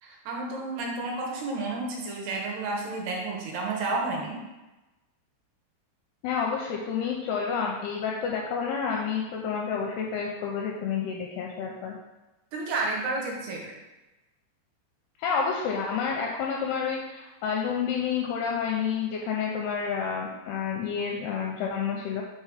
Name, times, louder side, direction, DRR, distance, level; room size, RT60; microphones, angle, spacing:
voice 1, 0.0-4.4 12.5-13.7, right 3 dB, 75° right, -2 dB, 2.8 m, -31 dB
voice 2, 6.2-12.0 15.2-22.2, left 6 dB, 85° left, 0 dB, 2.3 m, -29 dB
6.7 x 3.3 x 4.8 m, 1.1 s
omnidirectional pair, 5.0 m